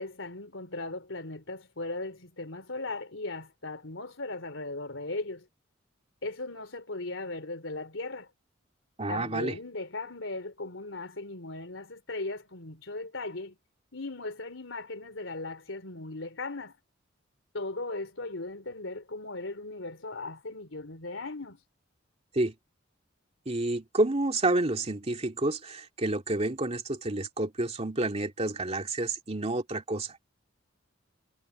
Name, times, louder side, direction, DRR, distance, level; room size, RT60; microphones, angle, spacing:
voice 1, 0.0-5.5 6.2-8.3 9.1-13.6 13.9-16.8 17.5-21.6, left 2 dB, 75° left, 3.5 m, -38 dB
voice 2, 9.0-9.6 22.3-22.5 23.5-30.2, right 2 dB, 35° right, 2.4 m, -29 dB
head